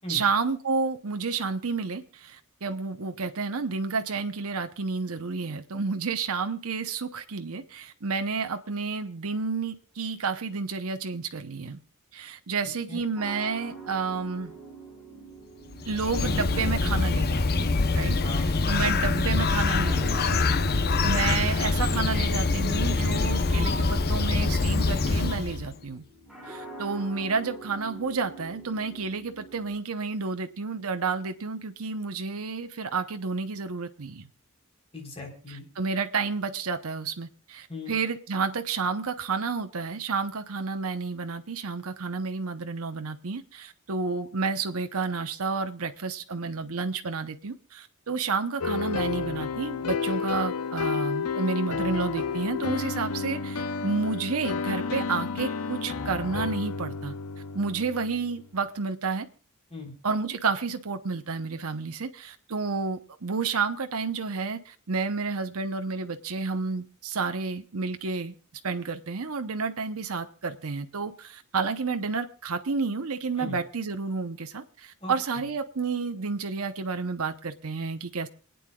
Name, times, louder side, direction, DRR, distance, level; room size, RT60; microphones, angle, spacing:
voice 1, 0.1-11.8 12.1-14.6 15.9-18.2 18.7-20.4 21.0-26.0 26.4-34.3 35.8-57.1 57.5-59.3 60.0-68.3 68.6-78.3, right 4 dB, 75° right, 0.9 m, -30 dB
sound 1, 13.2-29.7, equal, ahead, 4.4 m, -45 dB
Bird, 15.7-25.7, left 3 dB, 45° left, 0.8 m, -25 dB
voice 2, 34.9-35.7 37.7-37.9 59.7-59.9 73.4-73.6 75.0-75.5, left 2 dB, 25° left, 3.9 m, -38 dB
sound 2, 48.6-58.4, left 5 dB, 85° left, 0.7 m, -31 dB
27.5 x 9.4 x 2.4 m
head